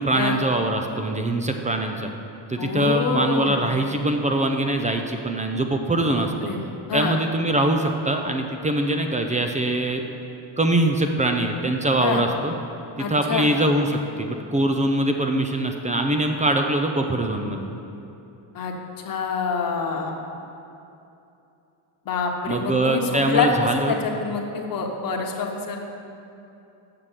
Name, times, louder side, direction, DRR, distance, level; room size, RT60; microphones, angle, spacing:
voice 1, 0.0-2.1 2.5-6.5 6.9-10.0 10.6-12.5 13.1-17.7 22.5-24.0, right 1 dB, 15° right, 4 dB, 0.3 m, -23 dB
voice 2, 2.6-3.7 6.2-6.6 6.9-7.1 12.0-12.2 13.0-13.5 18.5-18.7 19.0-20.1 22.0-25.8, left 5 dB, 45° left, 1 dB, 1.1 m, -26 dB
6.8 x 6.2 x 7.3 m, 2.8 s
cardioid pair, 130°, 49 cm